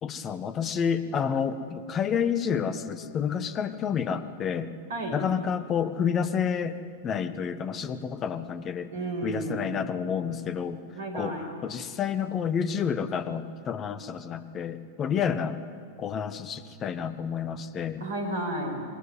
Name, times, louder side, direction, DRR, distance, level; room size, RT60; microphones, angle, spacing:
voice 1, 0.0-4.7 5.1-8.9 9.2-10.8 11.1-11.4 11.6-15.6 16.0-18.0, left 7 dB, 30° left, 12 dB, 1.4 m, -29 dB
voice 2, 4.9-5.2 8.9-9.9 10.9-11.5 18.0-18.8, right 1 dB, 60° right, 4 dB, 5.7 m, -32 dB
26.5 x 21.5 x 9.3 m, 2.2 s
figure-of-eight pair, 90°, 0 cm